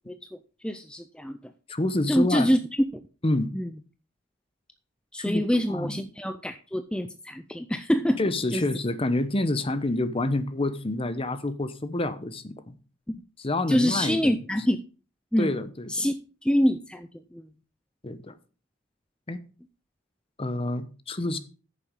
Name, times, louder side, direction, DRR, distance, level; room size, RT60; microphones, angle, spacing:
voice 1, 0.1-1.5 2.1-2.6 2.9-3.0 3.5-3.7 5.1-8.2 8.5-8.7 13.1-13.2 13.7-14.8 15.3-15.5 15.9-16.1 16.4-17.5, equal, 5° left, 0.5 m, -26 dB
voice 2, 1.7-2.5 3.2-3.5 5.2-5.4 5.7-6.0 8.2-12.8 13.4-14.3 15.4-16.1 18.0-18.3 19.3-19.4 20.4-21.4, left 2 dB, 30° left, 0.9 m, -28 dB
9.5 x 6.9 x 5.3 m
head